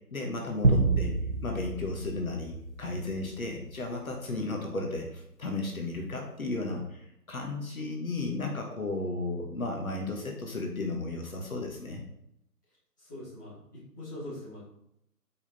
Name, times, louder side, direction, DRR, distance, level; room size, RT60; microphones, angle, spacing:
voice 1, 0.1-1.1 1.4-12.0, left 2 dB, 55° left, 1 dB, 1.4 m, -34 dB
sound 1, 0.6-3.2, right 3 dB, 45° right, 0.6 m, -28 dB
voice 2, 13.0-14.6, left 1 dB, 10° left, -11 dB, 1.6 m, -42 dB
5.4 x 4.9 x 4.2 m, 0.79 s
figure-of-eight pair, 170°, 49 cm